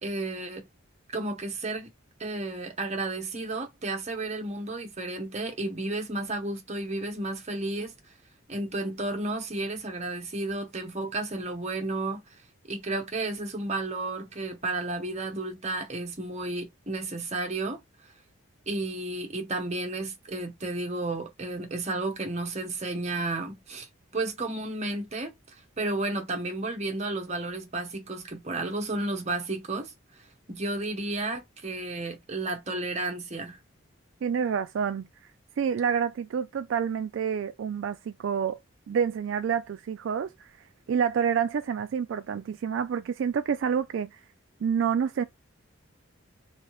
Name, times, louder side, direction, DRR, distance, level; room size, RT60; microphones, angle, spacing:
voice 1, 0.0-0.6 1.1-1.9 2.2-7.9 8.5-12.2 12.7-18.1 18.7-23.9 24.1-29.9 30.5-33.6, right 2 dB, 35° right, 0.8 m, -32 dB
voice 2, 34.2-35.1 35.6-38.6 38.9-44.2 44.6-45.2, right 7 dB, 65° right, 0.3 m, -28 dB
3.2 x 2.7 x 3.0 m
head